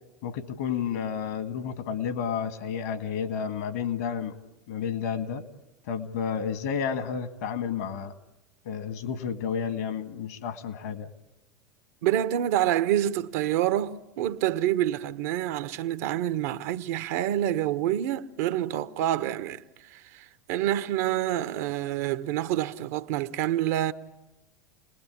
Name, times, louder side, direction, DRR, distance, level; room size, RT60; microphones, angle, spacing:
voice 1, 0.2-4.4 4.7-5.4 5.9-8.1 8.7-11.1, left 7 dB, 65° left, 2.1 m, -31 dB
voice 2, 12.0-23.9, right 12 dB, 60° right, 1.1 m, -27 dB
29.5 x 20.5 x 8.6 m
figure-of-eight pair, 85°, 9 cm